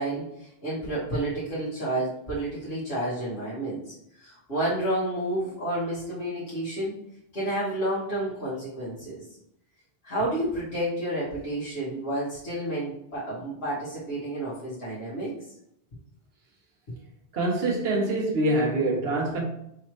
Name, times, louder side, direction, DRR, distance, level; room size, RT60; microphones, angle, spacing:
voice 1, 0.0-6.9 7.3-9.2 10.0-15.3, right 1 dB, 85° left, 1.8 m, -30 dB
voice 2, 17.3-19.4, right 2 dB, 75° right, 1.2 m, -25 dB
5.5 x 3.1 x 3.1 m
omnidirectional pair, 1.0 m